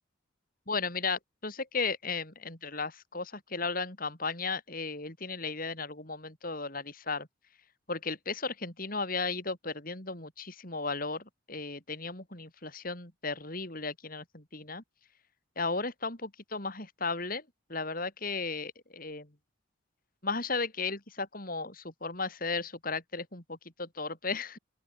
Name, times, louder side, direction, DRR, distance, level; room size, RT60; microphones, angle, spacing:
voice 1, 0.7-7.3 7.9-14.8 15.6-17.4 17.7-19.3 20.2-24.6, left 4 dB, 45° left, 4.2 m, -35 dB
open air
head